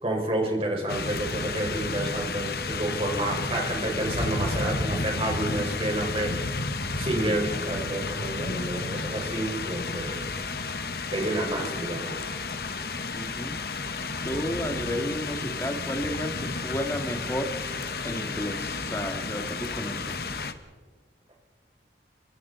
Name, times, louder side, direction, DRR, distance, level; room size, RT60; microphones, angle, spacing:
voice 1, 0.0-6.3 7.0-10.2 11.1-12.1, right 1 dB, 30° right, 0 dB, 4.7 m, -29 dB
sound 1, 0.9-20.5, left 3 dB, 60° left, 1.3 m, -32 dB
voice 2, 13.1-13.6 14.2-17.5 18.0-20.2, equal, 15° left, 5 dB, 2.0 m, -32 dB
29.5 x 24.0 x 4.0 m, 1.5 s
head